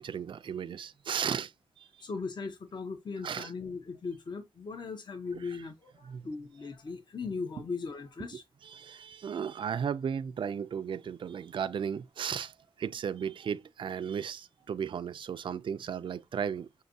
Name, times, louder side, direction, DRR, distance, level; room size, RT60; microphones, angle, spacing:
voice 1, 0.0-2.1 3.2-3.5 5.3-5.6 6.1-6.3 8.3-16.8, right 7 dB, 55° right, 0.3 m, -35 dB
voice 2, 2.0-8.4, left 4 dB, 50° left, 0.7 m, -38 dB
6.3 x 2.6 x 2.7 m
wide cardioid pair, 95°, 10 cm